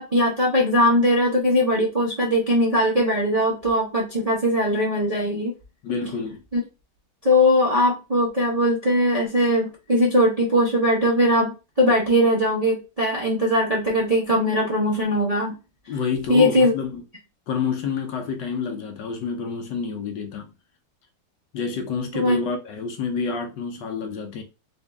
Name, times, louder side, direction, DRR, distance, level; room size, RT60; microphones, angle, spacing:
voice 1, 0.0-5.5 6.5-6.6 7.2-15.5 16.3-16.7 22.1-22.4, equal, 35° right, 0.6 m, -20 dB
voice 2, 5.8-6.4 15.9-17.0 17.5-20.5 21.5-24.4, left 5 dB, 70° left, 1.3 m, -28 dB
4.1 x 2.6 x 3.4 m
omnidirectional pair, 2.2 m